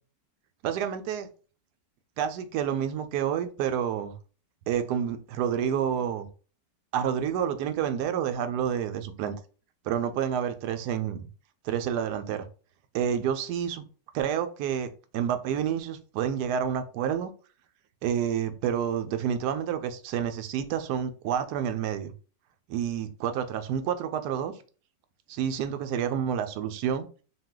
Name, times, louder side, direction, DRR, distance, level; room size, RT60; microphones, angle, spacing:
voice 1, 0.6-1.3 2.2-4.1 4.7-6.3 6.9-9.3 9.8-11.3 11.6-12.5 12.9-13.8 14.1-17.3 18.0-22.1 22.7-24.5 25.3-27.1, right 8 dB, 75° right, 9 dB, 1.1 m, -29 dB
4.0 x 2.4 x 3.6 m, 0.37 s
omnidirectional pair, 1.9 m